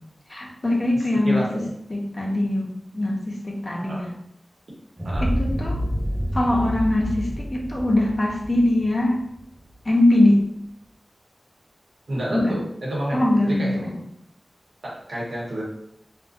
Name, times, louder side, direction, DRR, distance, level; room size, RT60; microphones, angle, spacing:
voice 1, 0.3-1.5 1.9-4.1 5.2-5.8 6.3-9.2 9.8-10.4 12.3-12.6 13.1-14.0, left 1 dB, 45° left, -1 dB, 0.6 m, -22 dB
voice 2, 1.2-1.6 3.8-4.0 5.0-5.3 12.1-13.9 14.8-15.6, right 1 dB, 85° right, -5 dB, 0.8 m, -29 dB
sound 1, 5.0-9.7, equal, 20° right, 0.9 m, -28 dB
2.4 x 2.2 x 2.4 m, 0.74 s
cardioid pair, 45°, 0 cm